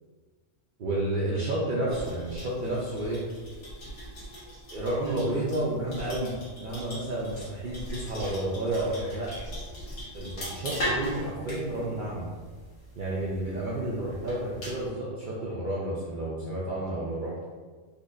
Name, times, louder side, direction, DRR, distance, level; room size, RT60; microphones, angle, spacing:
voice 1, 0.8-3.3 4.7-9.3 10.1-12.3 13.0-17.3, right 1 dB, 55° right, -6 dB, 0.6 m, -31 dB
sound 1, 1.9-14.9, equal, 70° left, 1.5 m, -39 dB
4.2 x 2.6 x 2.5 m, 1.4 s
omnidirectional pair, 1.3 m